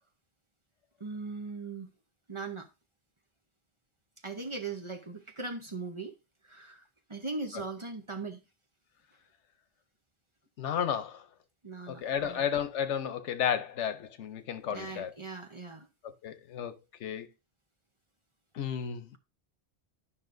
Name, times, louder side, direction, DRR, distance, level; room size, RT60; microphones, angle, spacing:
voice 1, 1.0-1.9 2.3-2.7 4.2-6.1 6.4-6.8 7.1-8.4 11.6-12.5 14.7-15.9, right 3 dB, 30° right, 0.7 m, -39 dB
voice 2, 10.6-11.3 11.9-15.1 16.0-17.3 18.5-19.2, left 8 dB, 90° left, 1.1 m, -33 dB
11.5 x 5.5 x 2.6 m
omnidirectional pair, 1.2 m